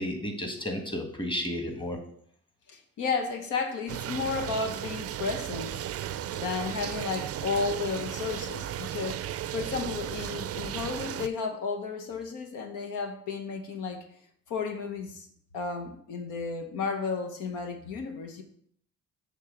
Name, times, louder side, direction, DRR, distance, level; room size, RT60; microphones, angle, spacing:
voice 1, 0.0-2.0, left 1 dB, 15° left, 4 dB, 1.3 m, -32 dB
voice 2, 2.7-5.8 6.3-14.0 14.5-15.3 15.5-18.4, left 4 dB, 85° left, 5 dB, 1.0 m, -33 dB
sound 1, 3.9-11.3, right 11 dB, 50° right, 0.4 m, -35 dB
7.4 x 3.5 x 4.9 m, 0.63 s
cardioid pair, 90°, 30 cm